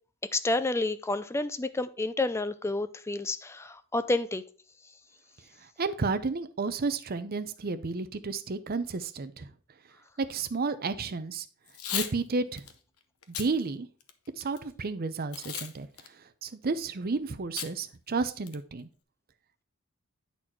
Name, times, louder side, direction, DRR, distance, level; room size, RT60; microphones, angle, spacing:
voice 1, 0.3-4.4, left 2 dB, 10° left, 13 dB, 0.4 m, -29 dB
voice 2, 5.8-9.5 10.2-11.4 11.9-12.6 13.4-13.9 14.4-15.9 16.4-18.9, right 4 dB, 45° right, 11 dB, 0.6 m, -31 dB
Packing tape duct tape / Tearing, 11.7-12.1 12.6-12.7 13.2-13.5 14.0-14.6 15.3-15.7 16.0-16.1 17.6-17.7 18.1-18.2 18.5-18.8, left 9 dB, 80° left, 0.8 m, -35 dB
9.0 x 4.2 x 4.5 m, 0.40 s
head